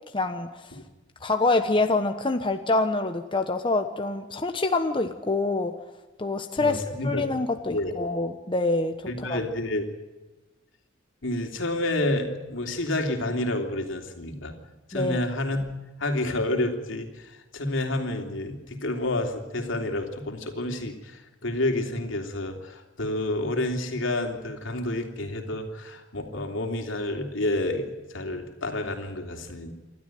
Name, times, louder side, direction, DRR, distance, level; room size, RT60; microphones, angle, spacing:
voice 1, 0.1-0.6 1.2-5.7 6.2-9.4 14.9-15.2, left 2 dB, 25° left, 6 dB, 1.1 m, -26 dB
voice 2, 6.6-7.2 7.7-7.9 9.1-9.8 11.2-14.6 14.9-15.6 16.0-17.1 17.5-29.7, left 1 dB, 75° left, 4 dB, 3.2 m, -29 dB
28.5 x 12.5 x 9.3 m, 1.1 s
head